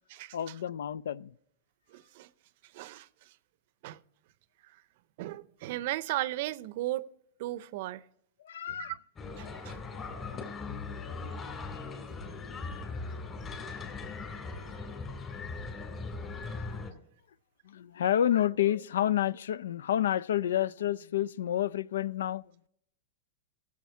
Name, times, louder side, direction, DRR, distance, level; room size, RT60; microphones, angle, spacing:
voice 1, 0.3-1.3 8.4-8.9 17.7-22.4, left 11 dB, 85° left, 0.4 m, -29 dB
voice 2, 1.9-2.3 2.7-3.1 3.8-4.0 5.2-7.0 7.4-8.0 8.7-9.0 9.4-10.0, right 16 dB, 60° right, 0.6 m, -36 dB
sound 1, 9.2-16.9, left 4 dB, 25° left, 2.7 m, -39 dB
16.5 x 7.2 x 4.7 m
hypercardioid pair, 135°, 0 cm